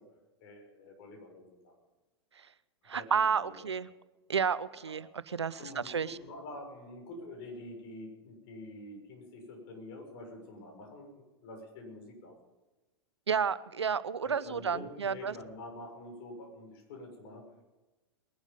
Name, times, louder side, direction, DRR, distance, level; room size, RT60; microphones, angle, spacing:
voice 1, 0.4-1.7 2.9-3.8 4.8-5.0 5.6-12.4 14.2-17.4, left 2 dB, 55° left, 2 dB, 6.7 m, -47 dB
voice 2, 2.9-3.9 4.3-6.2 13.3-15.3, right 6 dB, 85° right, 17 dB, 0.7 m, -31 dB
21.0 x 11.5 x 5.4 m, 1.1 s
hypercardioid pair, 100°, 14 cm